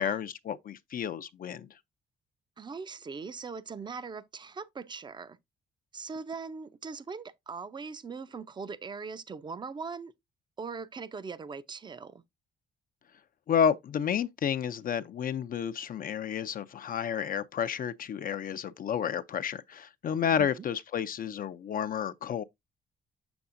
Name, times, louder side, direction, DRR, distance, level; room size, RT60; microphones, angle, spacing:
voice 1, 0.0-1.7 13.5-22.4, left 8 dB, 45° left, 0.4 m, -31 dB
voice 2, 2.6-5.4 5.9-10.1 10.6-12.2 20.4-20.5, right 5 dB, 25° right, 0.5 m, -40 dB
6.9 x 6.9 x 2.5 m
cardioid pair, 135°, 20 cm